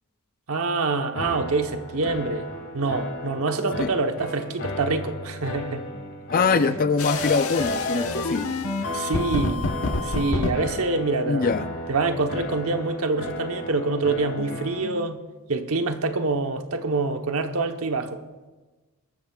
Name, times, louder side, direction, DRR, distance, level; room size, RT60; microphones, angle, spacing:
voice 1, 0.5-2.4 2.7-5.8 6.5-6.8 8.9-9.6 10.0-11.5 11.9-15.2 15.5-18.2, right 3 dB, 75° right, 1.0 m, -26 dB
sound 1, 1.1-14.9, left 1 dB, 60° left, 2.0 m, -35 dB
voice 2, 6.3-8.5 11.3-11.7 14.4-14.6 14.8-15.1, left 4 dB, 40° left, 0.5 m, -24 dB
sound 2, 7.0-10.5, left 2 dB, 80° left, 1.2 m, -27 dB
23.0 x 13.0 x 2.4 m
head